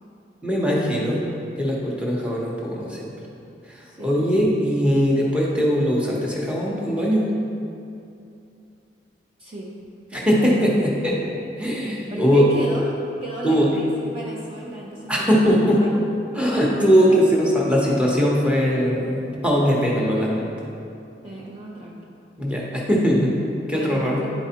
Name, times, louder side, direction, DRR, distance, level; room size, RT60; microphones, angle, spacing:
voice 1, 0.4-1.2 1.6-3.1 3.7-7.2 10.1-11.2 11.6-12.5 13.4-13.8 15.1-15.8 16.3-20.5 22.4-23.4 23.7-24.3, equal, 5° right, -5 dB, 0.9 m, -20 dB
voice 2, 3.8-4.2 9.4-9.7 10.1-10.7 12.1-15.9 16.7-17.2 21.2-22.0 23.7-24.3, right 1 dB, 30° right, -4 dB, 0.6 m, -34 dB
9.9 x 4.7 x 2.8 m, 2.6 s
head